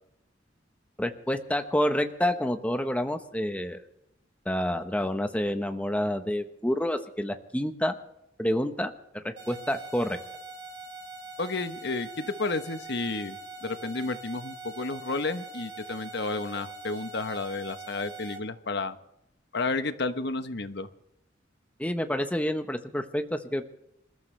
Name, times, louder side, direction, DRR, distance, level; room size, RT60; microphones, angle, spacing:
voice 1, 1.0-3.8 4.4-7.9 8.4-10.2 21.8-23.7, equal, 10° left, 7 dB, 1.1 m, -28 dB
sound 1, 9.4-18.4, right 3 dB, 75° right, 3.9 m, -43 dB
voice 2, 11.4-19.0 19.5-20.9, left 3 dB, 65° left, 9 dB, 1.1 m, -32 dB
27.0 x 14.0 x 3.4 m, 0.82 s
head